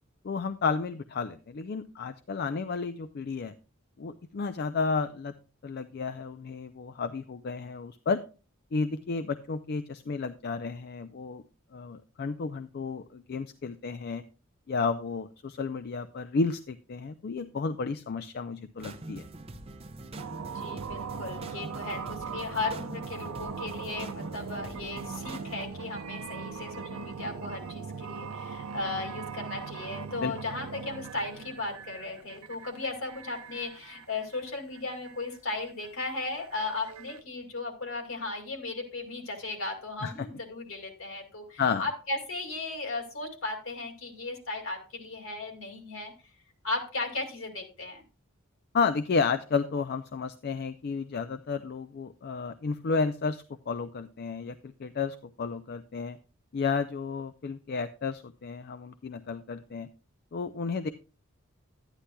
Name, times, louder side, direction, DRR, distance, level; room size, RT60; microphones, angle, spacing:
voice 1, 0.2-3.5 4.0-5.3 5.6-8.2 8.7-11.4 11.7-14.2 14.7-19.3 30.2-30.3 40.0-40.3 41.6-41.9 48.7-56.2 56.5-59.9 60.3-60.9, left 4 dB, 50° left, 11 dB, 0.4 m, -32 dB
sound 1, 18.8-25.6, right 2 dB, 30° right, 0.7 m, -44 dB
sound 2, 20.2-37.2, right 6 dB, 85° right, 0.6 m, -40 dB
voice 2, 20.4-46.1 46.6-48.0, left 3 dB, 70° left, 3 dB, 2.2 m, -36 dB
11.5 x 9.8 x 2.2 m, 0.34 s
head